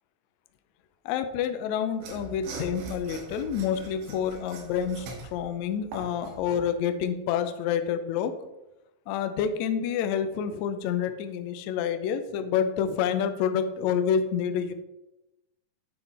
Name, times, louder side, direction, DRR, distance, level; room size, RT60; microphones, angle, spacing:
voice 1, 1.0-8.3 9.1-14.7, left 8 dB, 90° left, 9 dB, 1.6 m, -28 dB
Mechanisms / Sawing, 2.0-6.7, right 3 dB, 90° right, 2.9 m, -42 dB
9.0 x 3.9 x 4.1 m, 0.95 s
omnidirectional pair, 3.9 m